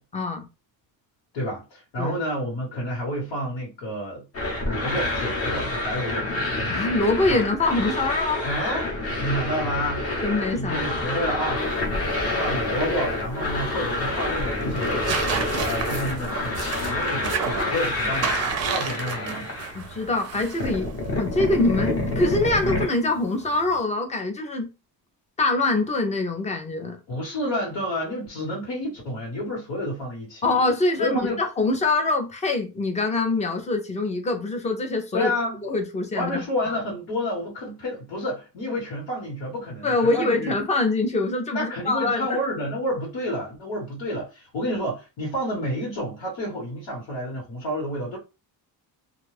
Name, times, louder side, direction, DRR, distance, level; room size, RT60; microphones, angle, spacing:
voice 1, 0.1-0.5 2.0-2.2 6.7-8.4 10.2-11.1 19.7-24.7 25.4-27.0 30.4-35.3 35.6-36.8 39.8-42.4, left 2 dB, 15° left, 0.4 m, -24 dB
voice 2, 1.3-4.2 4.6-6.3 7.3-7.4 8.4-8.9 9.2-10.1 10.5-11.6 12.3-15.1 15.6-18.3 18.6-19.5 27.1-30.5 31.0-31.4 35.1-35.6 36.1-40.6 41.5-48.2, equal, 80° left, 1.5 m, -29 dB
sound 1, 4.3-20.1 20.3-22.9, left 2 dB, 35° left, 0.9 m, -28 dB
sound 2, 11.6-23.8, right 6 dB, 40° right, 0.4 m, -34 dB
2.5 x 2.3 x 3.2 m
cardioid pair, 160°, 42 cm